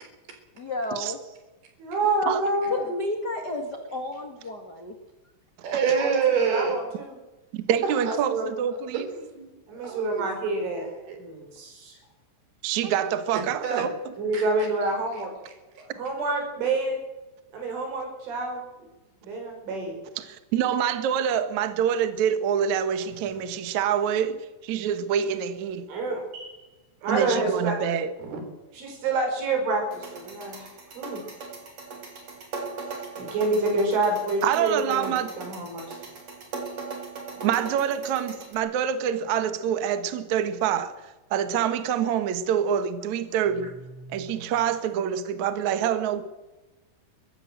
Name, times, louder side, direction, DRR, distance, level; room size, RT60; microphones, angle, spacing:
voice 1, 0.5-1.2 2.7-4.9 12.8-12.9, left 2 dB, 70° left, 0.9 m, -31 dB
voice 2, 1.8-2.8 6.0-7.2 8.3-8.5 9.7-10.9 11.2-12.0 14.2-15.3 16.0-17.0 17.5-18.6 19.2-20.0 25.9-26.6 27.0-27.8 28.7-31.3 33.2-35.9 44.0-44.4, right 2 dB, 70° right, 7.8 m, -28 dB
voice 3, 5.6-6.8 7.8-8.2 8.9-9.5 9.8-10.3 10.8-11.2 13.3-13.9 14.3-14.4 28.2-28.4, right 6 dB, 55° right, 5.4 m, -27 dB
voice 4, 7.5-9.1 12.6-14.1 20.2-25.9 27.1-28.1 34.4-35.5 37.4-43.7 44.1-46.2, right 9 dB, 85° right, 1.6 m, -26 dB
sound 1, 29.9-38.5, right 4 dB, 35° right, 4.1 m, -39 dB
23.0 x 15.5 x 7.8 m
omnidirectional pair, 5.8 m